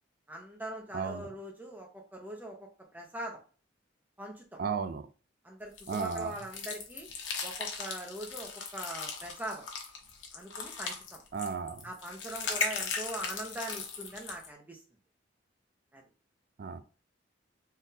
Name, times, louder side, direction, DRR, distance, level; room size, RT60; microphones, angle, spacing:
voice 1, 0.3-2.7 2.9-3.4 4.2-4.6 5.4-5.7 6.0-7.1 7.4-9.7 10.3-11.2 11.8-14.8 15.9-16.0, right 1 dB, 10° right, 0.7 m, -42 dB
voice 2, 0.9-1.3 4.6-5.1 5.9-6.3 11.3-11.8 16.6-16.8, right 5 dB, 50° right, 0.4 m, -34 dB
sound 1, 5.8-14.5, left 5 dB, 90° left, 0.8 m, -38 dB
3.8 x 2.6 x 2.7 m
head